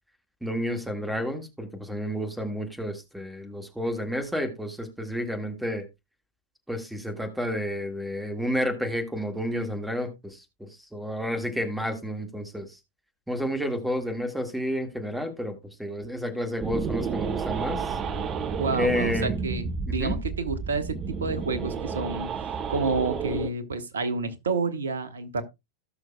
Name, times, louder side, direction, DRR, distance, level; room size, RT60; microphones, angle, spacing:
voice 1, 0.4-5.8 6.7-12.8 13.3-18.0 18.8-19.4 19.9-20.2, equal, 5° right, 1.8 m, -30 dB
sound 1, 16.6-23.5, right 5 dB, 30° right, 0.8 m, -31 dB
voice 2, 18.6-22.3 22.7-25.4, right 3 dB, 70° right, 1.2 m, -29 dB
18.0 x 6.3 x 2.3 m
figure-of-eight pair, 90°, 0 cm